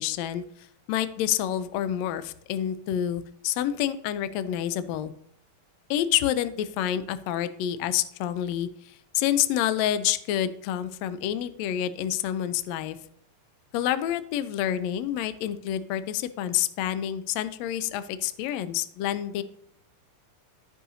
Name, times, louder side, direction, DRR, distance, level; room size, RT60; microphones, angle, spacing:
voice 1, 0.0-5.1 5.9-13.0 13.7-19.4, left 11 dB, 85° left, 13 dB, 1.5 m, -28 dB
15.5 x 5.6 x 2.7 m, 0.72 s
omnidirectional pair, 3.7 m